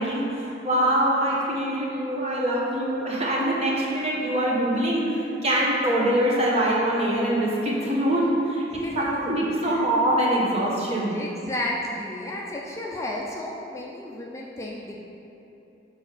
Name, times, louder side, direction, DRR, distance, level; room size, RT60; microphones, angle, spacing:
voice 1, 0.0-8.6 9.0-11.2, right 1 dB, 35° right, -4 dB, 1.2 m, -24 dB
voice 2, 8.7-10.0 11.1-15.0, left 1 dB, 15° left, -2 dB, 0.5 m, -33 dB
6.3 x 4.9 x 4.8 m, 2.9 s
head